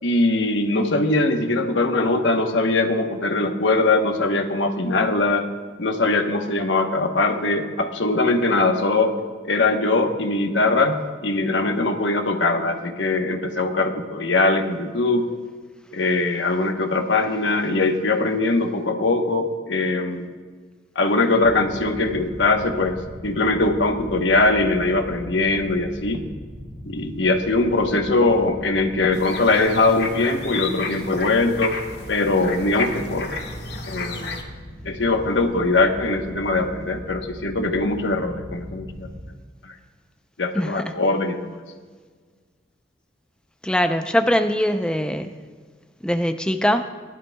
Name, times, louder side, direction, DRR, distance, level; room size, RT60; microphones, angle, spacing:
voice 1, 0.0-5.5 5.8-9.1 9.4-15.3 15.9-20.3 20.9-26.2 26.8-31.8 32.1-33.3 33.9-34.4 34.8-39.1 39.6-39.7 40.4-41.6, left 2 dB, 90° left, 5 dB, 1.1 m, -21 dB
sound 1, 21.4-39.2, equal, 25° left, 3.0 m, -40 dB
sound 2, 29.1-34.4, left 3 dB, 65° left, 1.4 m, -32 dB
voice 2, 43.6-45.3 46.0-46.9, equal, 5° left, 7 dB, 0.5 m, -22 dB
19.0 x 12.0 x 2.3 m, 1.5 s
head